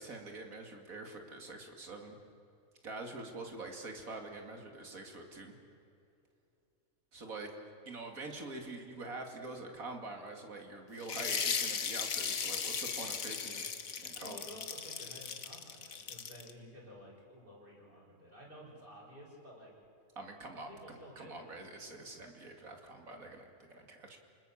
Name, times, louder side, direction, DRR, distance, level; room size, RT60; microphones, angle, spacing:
voice 1, 0.0-2.2 2.8-5.5 7.1-7.5 7.9-13.7 14.0-14.4 20.2-24.2, right 2 dB, 90° right, 3 dB, 3.0 m, -45 dB
sound 1, 11.0-16.5, left 6 dB, 85° left, 1.7 m, -37 dB
voice 2, 14.1-19.7 20.5-21.5, equal, 40° right, -4 dB, 6.5 m, -53 dB
29.5 x 20.0 x 7.4 m, 2.7 s
omnidirectional pair, 1.4 m